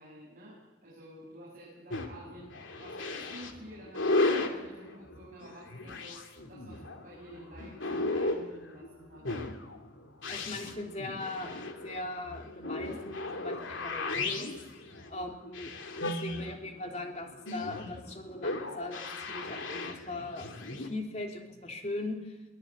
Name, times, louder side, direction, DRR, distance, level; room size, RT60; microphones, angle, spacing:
voice 1, 0.0-9.3, right 1 dB, 40° right, -5 dB, 7.0 m, -50 dB
sound 1, 1.9-20.9, left 2 dB, 85° left, 2.7 m, -35 dB
voice 2, 10.3-11.5 11.8-14.5 15.1-22.3, left 2 dB, 35° left, 2 dB, 3.3 m, -40 dB
23.0 x 18.5 x 8.9 m, 1.2 s
head